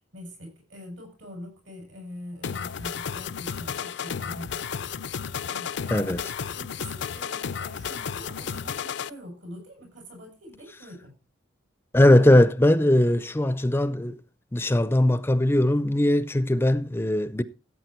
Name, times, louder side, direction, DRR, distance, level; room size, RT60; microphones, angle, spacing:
voice 1, 0.1-4.7 5.5-6.3 6.5-11.1, equal, 80° right, 7.3 m, -44 dB
sound 1, 2.4-9.1, left 7 dB, 65° left, 0.5 m, -33 dB
voice 2, 11.9-14.2 14.5-17.4, left 1 dB, 10° left, 0.5 m, -20 dB
15.0 x 8.6 x 4.5 m
head